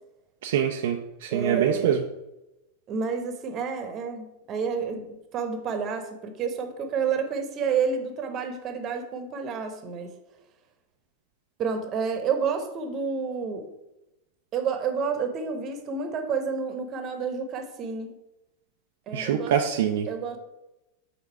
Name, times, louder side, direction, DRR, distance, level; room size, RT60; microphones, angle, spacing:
voice 1, 0.4-2.0 19.1-20.1, right 9 dB, 55° right, 2 dB, 0.6 m, -25 dB
voice 2, 1.3-2.0 2.9-5.1 5.3-10.1 11.6-13.7 14.5-18.1 19.1-19.5 20.1-20.4, right 6 dB, 30° right, 6 dB, 1.1 m, -29 dB
6.7 x 3.9 x 5.7 m, 0.95 s
figure-of-eight pair, 90°, 0 cm